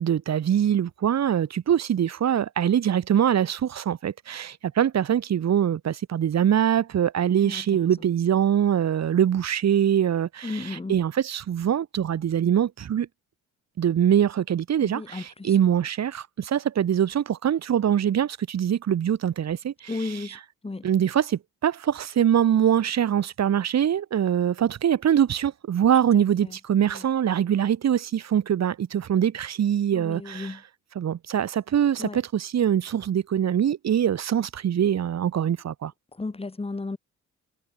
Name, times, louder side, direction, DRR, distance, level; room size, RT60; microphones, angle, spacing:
voice 1, 0.0-13.1 13.8-20.4 20.8-30.6 30.9-35.9, right 9 dB, 60° right, 5.1 m, -23 dB
voice 2, 10.4-11.0 14.8-15.5 19.9-20.4 20.6-20.8 26.1-26.2 26.8-27.0 29.9-30.6 32.0-32.2 36.2-37.0, left 3 dB, 20° left, 3.2 m, -33 dB
cardioid pair, 90°, 30 cm